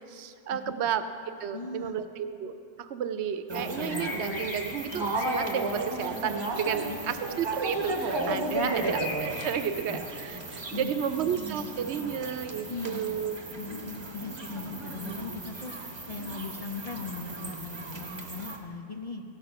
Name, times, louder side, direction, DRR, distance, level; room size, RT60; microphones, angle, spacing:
voice 1, 0.1-1.0 1.4-2.5 2.8-13.4, right 8 dB, 75° right, 10 dB, 0.9 m, -32 dB
voice 2, 1.5-1.9 6.8-7.1 8.4-8.9 9.9-10.0 10.7-10.9 12.7-13.2 13.5-19.2, left 3 dB, 45° left, 4 dB, 0.5 m, -39 dB
sound 1, 3.5-18.6, right 2 dB, 25° right, 0.9 m, -35 dB
sound 2, 3.9-10.8, left 3 dB, 75° left, 1.4 m, -42 dB
15.5 x 6.7 x 5.7 m, 2.5 s
omnidirectional pair, 1.2 m